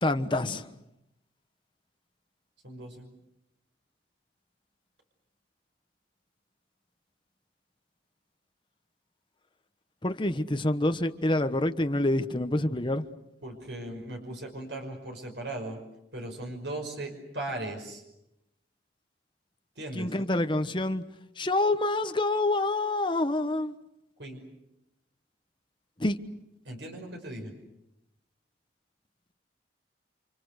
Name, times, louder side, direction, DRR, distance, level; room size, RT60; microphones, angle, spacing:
voice 1, 0.0-0.7 10.0-13.0 19.9-21.0 21.4-23.7 26.0-26.2, left 2 dB, 25° left, 1.2 m, -27 dB
voice 2, 2.6-3.1 13.4-15.8 16.1-18.0 19.8-20.2 24.2-24.4 26.6-27.5, right 1 dB, 75° right, 5.6 m, -38 dB
30.0 x 26.5 x 6.6 m
head